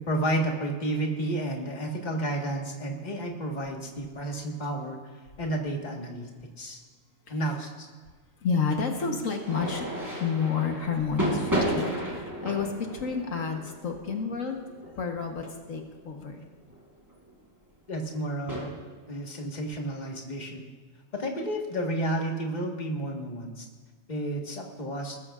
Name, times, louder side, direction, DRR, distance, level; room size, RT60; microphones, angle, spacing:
voice 1, 0.0-5.0 5.4-6.3 6.6-6.8 7.3-7.9 17.9-18.7 19.1-20.7 21.1-23.6 24.1-25.2, right 1 dB, 35° left, 0 dB, 1.7 m, -31 dB
voice 2, 8.4-9.9 10.2-16.4, left 5 dB, 75° left, 3 dB, 1.6 m, -30 dB
sound 1, 9.4-15.8 16.6-16.8 17.1-17.3 18.1-18.6, right 1 dB, 15° right, 3.5 m, -33 dB
20.5 x 13.5 x 2.5 m, 1.5 s
omnidirectional pair, 1.4 m